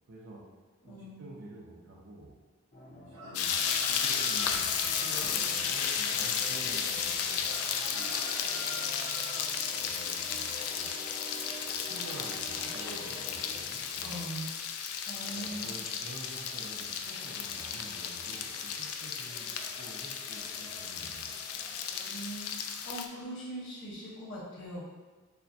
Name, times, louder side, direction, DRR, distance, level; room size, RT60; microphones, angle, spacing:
voice 1, 0.1-0.4 0.8-2.3 2.9-8.4 9.5-10.9 11.8-14.3 15.2-21.3, right 1 dB, 55° right, -6 dB, 0.6 m, -49 dB
voice 2, 0.8-1.4 12.8-12.9 14.0-14.6 15.1-15.7 22.0-24.9, right 1 dB, 55° left, -6 dB, 1.0 m, -41 dB
sound 1, 2.7-14.4 15.1-22.2, left 1 dB, 30° left, 0.6 m, -49 dB
sound 2, 3.1-5.4 7.5-9.5, right 1 dB, 85° right, 1.0 m, -46 dB
sound 3, 3.3-23.1, left 7 dB, 80° left, 0.4 m, -34 dB
6.6 x 2.2 x 2.7 m, 1.3 s
head